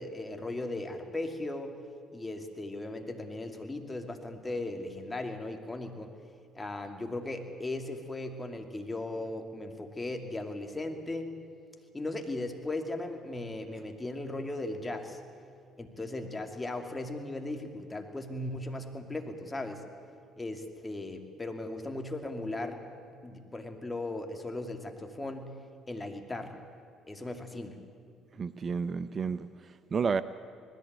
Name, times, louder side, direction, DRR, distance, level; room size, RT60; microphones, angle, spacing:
voice 1, 0.0-1.8 2.1-6.1 6.5-11.3 11.9-15.2 15.8-19.8 20.4-22.8 23.2-25.6 25.9-26.6 27.1-27.8, left 2 dB, 20° left, 5 dB, 2.5 m, -37 dB
voice 2, 28.4-30.2, right 5 dB, 40° right, 15 dB, 0.6 m, -31 dB
20.0 x 14.5 x 9.4 m, 2.2 s
supercardioid pair, 65°, 0 cm